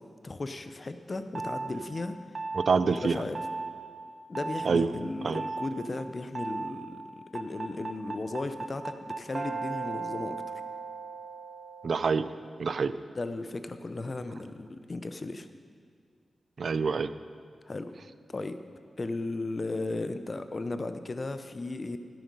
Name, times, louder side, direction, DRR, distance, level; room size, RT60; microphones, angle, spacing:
voice 1, 0.2-2.2 2.8-3.4 4.3-7.0 7.3-10.4 13.2-15.5 17.7-17.9 18.3-18.6 19.0-22.0, left 2 dB, 40° left, 10 dB, 0.7 m, -35 dB
sound 1, 1.4-1.7 2.4-2.7 3.4-3.7 4.4-4.7 5.4-5.7 6.4-6.7 7.4-12.4, right 4 dB, 50° right, 0.9 m, -36 dB
voice 2, 2.5-3.2 4.7-4.9 5.2-5.4 11.8-12.3 12.6-12.9 16.6-17.1, right 5 dB, 65° right, 14 dB, 0.4 m, -26 dB
11.0 x 9.2 x 5.3 m, 2.2 s
cardioid pair, 80°, 0 cm